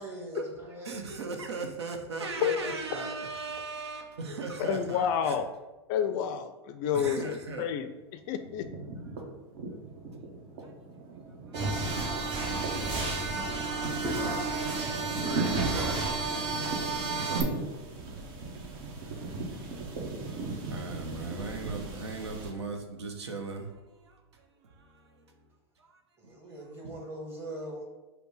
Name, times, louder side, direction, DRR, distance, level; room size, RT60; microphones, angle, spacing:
voice 1, 0.0-0.9 26.2-27.8, right 1 dB, 15° right, -3 dB, 1.5 m, -41 dB
voice 2, 0.8-5.4 6.9-7.7 10.6-10.7 11.5-11.9 18.2-25.3 25.8-26.3 26.8-26.9, right 3 dB, 80° right, 3 dB, 0.8 m, -40 dB
voice 3, 4.6-5.5 5.9-7.9 8.3-8.7, left 8 dB, 45° left, 9 dB, 0.4 m, -29 dB
sound 1, 7.4-8.0 8.2-22.5, right 3 dB, 60° right, 1.1 m, -38 dB
sound 2, 11.5-17.4, right 3 dB, 35° right, 1.0 m, -31 dB
5.1 x 2.1 x 4.8 m, 1.1 s
hypercardioid pair, 105°, 14 cm